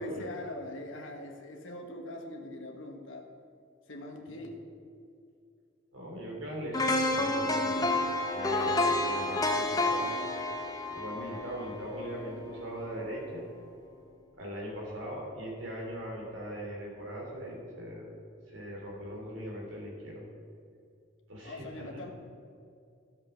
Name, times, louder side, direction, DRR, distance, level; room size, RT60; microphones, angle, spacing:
voice 1, 0.0-3.2 3.9-4.6 21.4-22.1, left 1 dB, 80° left, 2 dB, 1.3 m, -42 dB
voice 2, 5.9-8.1 8.3-10.2 10.9-13.5 14.4-18.1 18.5-20.3 21.3-22.1, equal, 80° right, -2 dB, 3.2 m, -40 dB
sound 1, 6.7-12.8 13.1-13.3, left 2 dB, 20° left, 0.7 m, -30 dB
12.0 x 7.5 x 5.7 m, 2.4 s
head